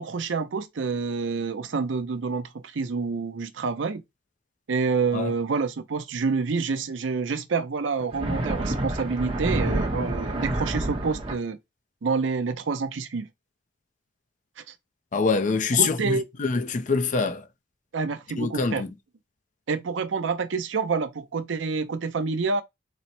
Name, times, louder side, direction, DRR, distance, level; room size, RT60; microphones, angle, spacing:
voice 1, 0.0-4.0 4.7-11.6 12.0-13.3 14.7-14.8 15.8-16.2 17.9-18.8 19.7-22.6, right 4 dB, 80° right, 0.5 m, -28 dB
sound 1, 8.0-11.3, right 1 dB, 30° right, 0.7 m, -28 dB
voice 2, 15.1-17.5 18.4-18.9, left 4 dB, 45° left, 0.5 m, -25 dB
4.1 x 2.1 x 4.2 m
head